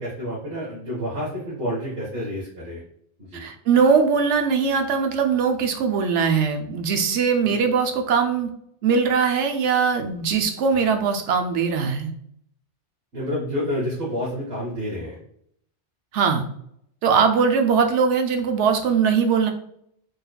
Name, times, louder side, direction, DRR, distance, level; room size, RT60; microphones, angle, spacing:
voice 1, 0.0-2.8 3.3-3.4 13.1-15.2, equal, 60° right, -7 dB, 1.4 m, -29 dB
voice 2, 3.3-8.5 8.8-12.1 16.1-16.4 17.0-19.5, right 6 dB, 85° right, 5 dB, 0.9 m, -21 dB
4.6 x 3.3 x 2.2 m, 0.69 s
omnidirectional pair, 1.2 m